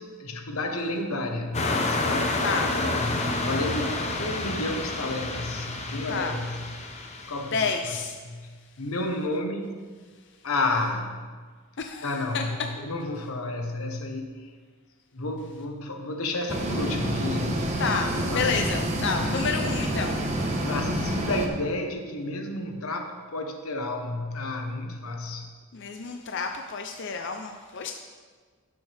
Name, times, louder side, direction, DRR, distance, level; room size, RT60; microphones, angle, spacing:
voice 1, 0.0-6.7 7.3-8.0 8.2-9.8 10.4-11.4 12.0-14.5 15.1-18.6 20.6-25.5, left 2 dB, 90° left, 4 dB, 1.2 m, -31 dB
sound 1, 1.5-7.7, left 2 dB, 30° left, 0.9 m, -29 dB
voice 2, 2.4-2.7 6.1-6.3 7.2-8.2 11.8-12.4 17.8-20.7 25.7-27.9, left 5 dB, 55° left, 4 dB, 0.6 m, -30 dB
sound 2, 16.5-21.5, right 1 dB, 30° right, 1.1 m, -28 dB
16.0 x 7.1 x 3.5 m, 1.5 s
head